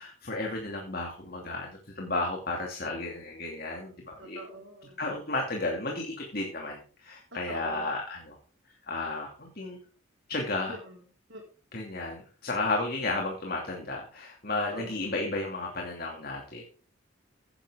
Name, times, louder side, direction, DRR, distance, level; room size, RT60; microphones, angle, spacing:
voice 1, 0.0-4.4 5.0-8.4 8.9-9.8 10.3-10.8 11.7-16.6, left 2 dB, 45° left, 0 dB, 2.6 m, -33 dB
voice 2, 4.2-5.0 7.3-7.9 10.7-11.0 11.3-11.4 14.7-14.9, right 1 dB, 60° right, -3 dB, 4.2 m, -44 dB
16.5 x 10.5 x 3.7 m, 0.40 s
head